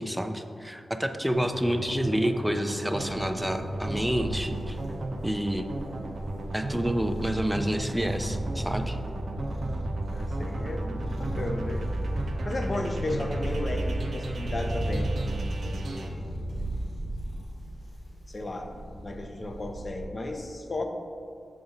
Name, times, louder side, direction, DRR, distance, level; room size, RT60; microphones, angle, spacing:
voice 1, 0.0-4.8 5.2-5.7 6.5-9.0, equal, 5° right, 7 dB, 0.4 m, -29 dB
sound 1, 1.3-16.1, right 1 dB, 75° right, 0.6 m, -36 dB
sound 2, 2.9-20.0, right 1 dB, 75° left, 1.2 m, -35 dB
voice 2, 10.1-11.9 12.4-16.3 18.3-18.7 19.0-20.8, left 2 dB, 40° left, 4 dB, 0.6 m, -34 dB
6.9 x 4.1 x 3.9 m, 2.4 s
wide cardioid pair, 95°, 0 cm